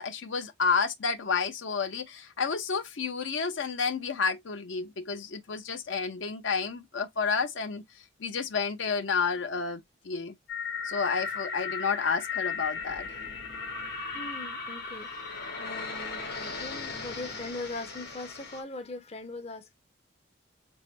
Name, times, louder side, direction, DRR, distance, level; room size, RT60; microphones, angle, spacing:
voice 1, 0.0-7.8 8.2-9.8 10.0-10.3 10.8-13.1, left 5 dB, 75° left, 0.6 m, -30 dB
sound 1, 10.5-18.6, left 5 dB, 55° left, 1.1 m, -36 dB
voice 2, 14.1-15.2 15.6-19.7, left 2 dB, 35° left, 0.5 m, -40 dB
3.6 x 2.9 x 3.1 m
head